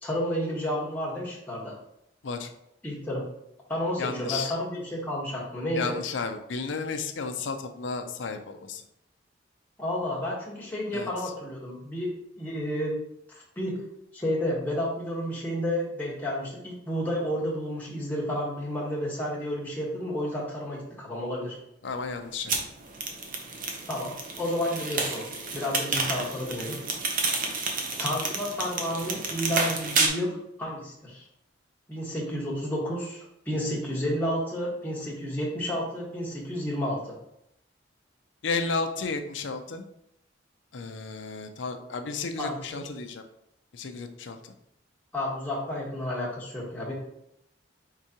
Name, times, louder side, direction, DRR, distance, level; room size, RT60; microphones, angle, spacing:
voice 1, 0.0-1.7 2.8-3.2 3.7-5.9 9.8-12.9 13.6-13.8 14.1-21.5 23.9-25.3 25.5-26.8 28.0-31.2 31.9-37.2 42.4-42.8 45.1-46.9, equal, 10° left, -6 dB, 1.2 m, -31 dB
voice 2, 4.0-4.5 5.7-8.8 10.9-11.1 21.8-22.6 38.4-39.8 40.7-43.2 43.7-44.5, left 4 dB, 75° left, 7 dB, 0.5 m, -33 dB
sound 1, 22.5-30.1, right 3 dB, 45° right, 0.7 m, -30 dB
4.8 x 3.7 x 2.8 m, 0.77 s
head